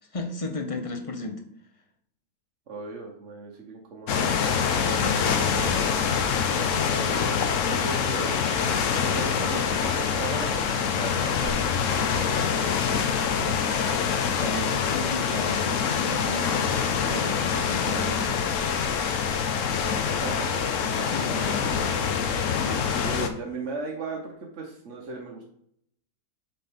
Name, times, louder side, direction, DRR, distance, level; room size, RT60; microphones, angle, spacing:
voice 1, 0.1-1.4 4.9-5.5 14.4-18.4 21.1-21.4, left 2 dB, 40° left, 4 dB, 0.5 m, -34 dB
voice 2, 2.7-4.4 4.9-5.9 6.9-8.5 9.0-12.2 20.1-20.6 21.3-21.7 22.7-25.4, right 3 dB, 50° right, 0 dB, 1.3 m, -37 dB
sound 1, 4.1-23.3, left 6 dB, 60° left, 1.0 m, -25 dB
7.5 x 4.3 x 3.6 m, 0.67 s
omnidirectional pair, 1.6 m